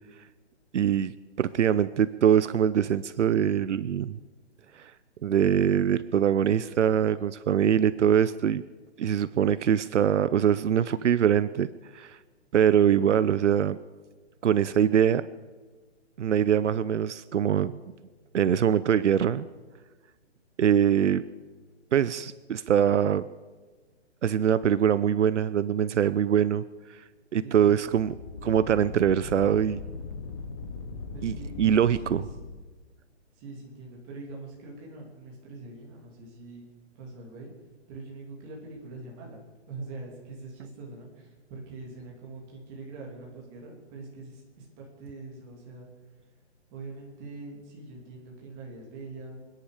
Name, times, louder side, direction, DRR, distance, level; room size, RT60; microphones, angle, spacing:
voice 1, 0.7-1.1 1.4-4.2 4.7-4.9 5.2-8.6 9.0-12.2 12.5-13.8 14.4-15.3 16.2-17.8 18.3-19.5 20.6-21.2 21.9-23.3 24.2-26.6 26.9-27.0 27.3-28.1 28.4-29.8 31.2-32.2, right 9 dB, 75° right, 16 dB, 0.7 m, -23 dB
voice 2, 27.4-27.9 31.1-32.2 33.3-36.7 36.9-37.5 37.9-45.9 46.7-49.4, right 3 dB, 15° right, -2 dB, 2.7 m, -43 dB
sound 1, 27.8-32.6, left 4 dB, 25° left, 1.3 m, -39 dB
27.0 x 10.5 x 4.9 m, 1.3 s
hypercardioid pair, 175°, 36 cm